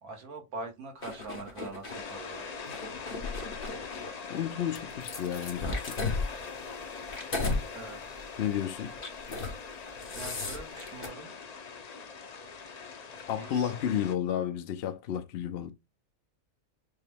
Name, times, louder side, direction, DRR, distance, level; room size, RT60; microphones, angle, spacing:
voice 1, 0.0-2.6 7.7-8.2 10.1-11.3 13.3-13.7, right 3 dB, 80° right, 1.8 m, -43 dB
sound 1, 1.0-2.0 2.6-4.1 4.8-7.6 8.1-8.3 8.9-9.6 9.9-11.1, left 3 dB, 40° left, 1.3 m, -35 dB
sound 2, 1.9-14.2, left 5 dB, 75° left, 0.3 m, -42 dB
voice 2, 4.3-6.0 8.4-8.9 13.3-15.7, left 9 dB, 60° left, 0.7 m, -32 dB
6.6 x 2.2 x 3.4 m
omnidirectional pair, 1.5 m